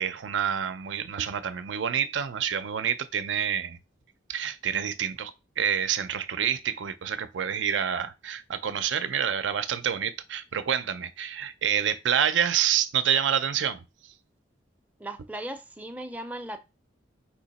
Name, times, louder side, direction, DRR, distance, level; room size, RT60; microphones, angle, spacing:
voice 1, 0.0-3.8 4.3-13.8, right 8 dB, 85° right, 0.5 m, -28 dB
voice 2, 15.0-16.6, right 1 dB, 10° right, 0.4 m, -37 dB
4.5 x 2.9 x 4.1 m
head